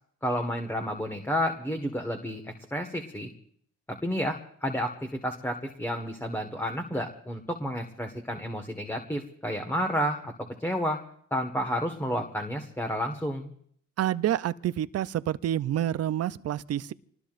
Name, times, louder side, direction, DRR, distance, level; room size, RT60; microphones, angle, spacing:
voice 1, 0.2-3.3 3.9-10.3 10.6-11.0 11.3-13.5, equal, 5° left, 1.6 m, -31 dB
voice 2, 14.0-16.9, right 11 dB, 55° right, 0.6 m, -28 dB
27.0 x 20.0 x 2.6 m
cardioid pair, 90°, 30 cm